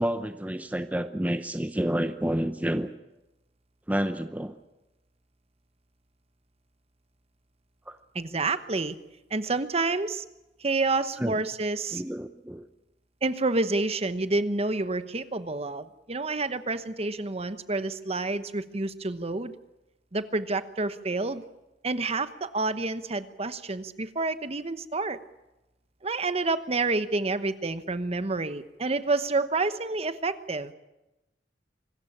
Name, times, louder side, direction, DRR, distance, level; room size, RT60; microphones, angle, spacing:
voice 1, 0.0-2.9 3.9-4.5 7.9-8.0 11.2-11.4 11.9-12.7, equal, 10° right, 9 dB, 0.7 m, -29 dB
voice 2, 8.1-9.0 9.3-10.2 10.6-12.0 13.2-19.5 20.1-21.4 21.8-25.2 26.0-30.7, right 3 dB, 35° right, 12 dB, 1.0 m, -29 dB
25.0 x 14.0 x 9.8 m, 1.0 s
head